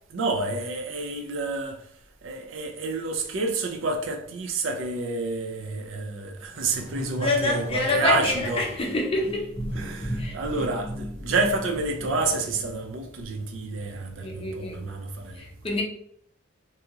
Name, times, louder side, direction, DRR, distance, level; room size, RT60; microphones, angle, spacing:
voice 1, 0.1-1.8 2.2-8.7 9.7-15.4, right 3 dB, 70° right, 0.4 m, -29 dB
sound 1, 6.5-13.3, right 1 dB, 10° left, 1.1 m, -36 dB
voice 2, 7.1-9.5 10.2-10.4 14.2-14.8 15.4-15.8, left 2 dB, 25° left, 0.5 m, -26 dB
2.8 x 2.7 x 2.4 m
head